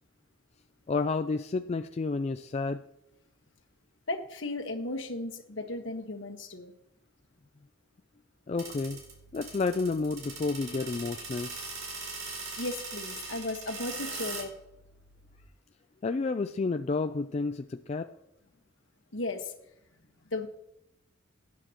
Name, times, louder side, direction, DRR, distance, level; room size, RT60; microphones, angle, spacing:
voice 1, 0.9-2.8 8.5-9.0 9.3-11.5 16.0-18.1, left 3 dB, 30° left, 8 dB, 0.3 m, -30 dB
voice 2, 4.1-6.7 12.6-14.6 19.1-19.5 20.3-20.5, left 2 dB, 65° left, 5 dB, 1.4 m, -35 dB
sound 1, 8.6-15.4, right 3 dB, 85° right, 4.2 m, -41 dB
17.5 x 10.0 x 3.0 m, 0.81 s
head